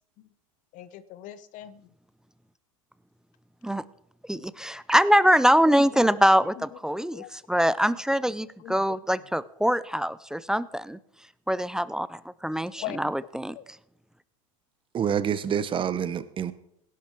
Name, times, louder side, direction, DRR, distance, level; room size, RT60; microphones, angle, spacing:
voice 1, 0.7-1.9 5.8-6.2 6.6-6.7 7.1-7.3 8.6-8.8 12.8-13.1 13.5-13.6, left 12 dB, 50° left, 16 dB, 0.8 m, -40 dB
voice 2, 4.3-11.0 11.5-13.6, equal, 5° right, 18 dB, 0.4 m, -23 dB
voice 3, 14.9-16.5, right 8 dB, 30° right, 15 dB, 1.0 m, -27 dB
17.0 x 11.0 x 4.6 m, 0.72 s
supercardioid pair, 110°, 17 cm